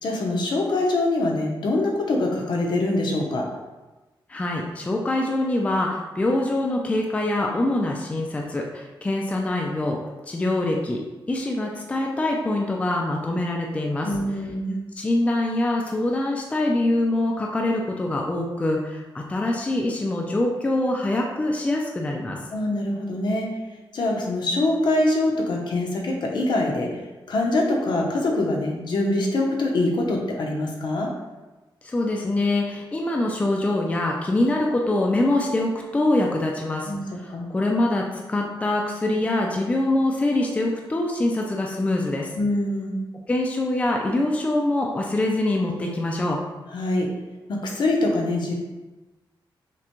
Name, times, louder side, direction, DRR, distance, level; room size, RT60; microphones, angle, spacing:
voice 1, 0.0-3.5 14.0-14.8 22.5-23.5 23.9-26.9 27.3-31.1 36.9-37.0 37.3-37.5 42.3-43.0 46.7-47.1 47.5-48.6, left 2 dB, 65° left, 0 dB, 0.7 m, -24 dB
voice 2, 4.3-10.0 10.3-11.0 11.3-14.1 15.0-22.4 31.8-36.9 37.2-42.3 43.3-46.4, left 1 dB, 15° left, 0 dB, 0.3 m, -24 dB
5.8 x 2.2 x 3.0 m, 1.1 s
wide cardioid pair, 150°, 9 cm